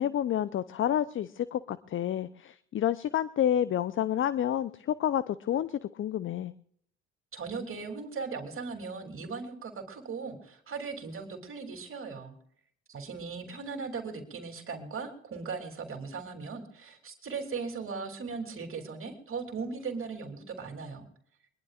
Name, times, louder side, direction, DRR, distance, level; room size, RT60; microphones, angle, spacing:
voice 1, 0.0-6.5, left 10 dB, 35° left, 16 dB, 0.7 m, -29 dB
voice 2, 7.3-12.3 12.9-21.1, right 5 dB, 40° right, 4 dB, 3.1 m, -38 dB
22.0 x 22.0 x 2.5 m, 0.63 s
hypercardioid pair, 60°, 34 cm